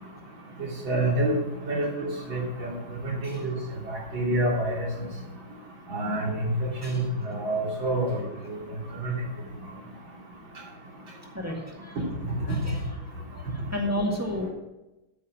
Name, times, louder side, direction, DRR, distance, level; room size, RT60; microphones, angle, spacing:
voice 1, 0.6-1.3 1.7-2.7 3.0-3.5 3.9-4.9 5.9-8.6 9.0-9.1, right 1 dB, 80° right, -3 dB, 3.9 m, -28 dB
voice 2, 11.3-12.0 12.5-13.0 13.3-14.5, left 1 dB, 10° right, -1 dB, 1.6 m, -32 dB
9.9 x 7.3 x 6.2 m, 1.0 s
omnidirectional pair, 2.1 m